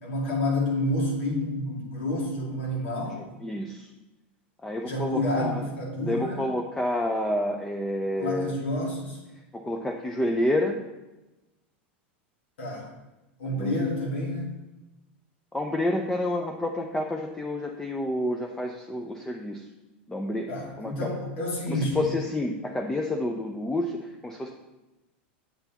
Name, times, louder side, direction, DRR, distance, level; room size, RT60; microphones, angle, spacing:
voice 1, 0.0-3.2 4.8-6.4 8.2-9.2 12.6-12.8 13.4-14.5 20.5-22.0, left 1 dB, 85° left, -3 dB, 2.1 m, -29 dB
voice 2, 3.0-3.9 4.6-5.7 6.0-8.5 9.3-10.8 13.4-13.8 15.5-19.7 20.1-21.2 21.7-24.5, left 1 dB, 10° left, 2 dB, 0.5 m, -29 dB
6.9 x 6.8 x 2.9 m, 1.0 s
hypercardioid pair, 110°, 6 cm